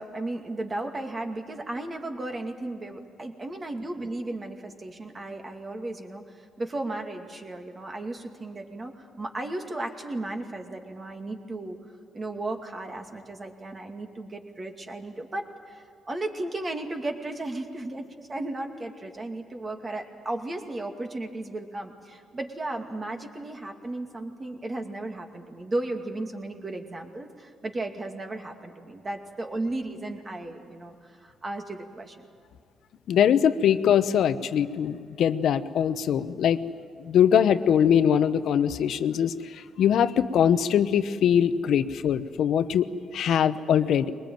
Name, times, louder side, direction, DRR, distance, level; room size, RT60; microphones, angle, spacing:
voice 1, 0.0-11.8 12.1-32.2, right 2 dB, 30° right, 4 dB, 2.4 m, -35 dB
voice 2, 33.1-36.6 37.0-42.9 43.1-44.1, left 9 dB, 70° left, 12 dB, 0.9 m, -22 dB
22.5 x 20.0 x 9.2 m, 2.3 s
cardioid pair, 90°, 0 cm